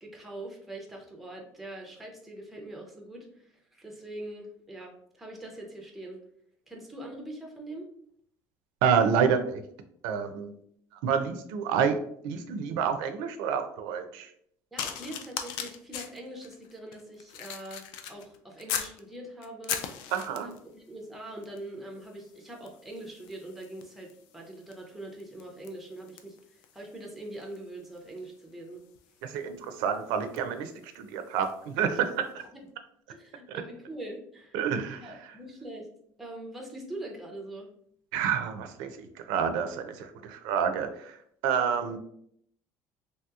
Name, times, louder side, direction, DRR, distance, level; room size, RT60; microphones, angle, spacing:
voice 1, 0.0-6.2 6.7-7.9 14.7-19.8 20.4-28.8 31.9-32.0 33.1-34.6 35.0-35.9 36.2-37.7, right 1 dB, ahead, 0 dB, 0.4 m, -43 dB
voice 2, 8.8-9.6 10.0-10.5 11.0-12.0 12.2-14.3 20.1-20.5 29.2-30.7 31.0-32.0 32.3-32.4 33.5-33.6 34.5-35.1 38.1-41.2 41.4-42.0, right 7 dB, 75° right, 8 dB, 0.4 m, -28 dB
sound 1, 14.8-19.0 19.4-20.7 21.4-21.7 22.0-31.6 32.3-32.5, left 8 dB, 70° left, 0.3 m, -40 dB
3.1 x 2.8 x 2.3 m, 0.67 s
cardioid pair, 180°, 8 cm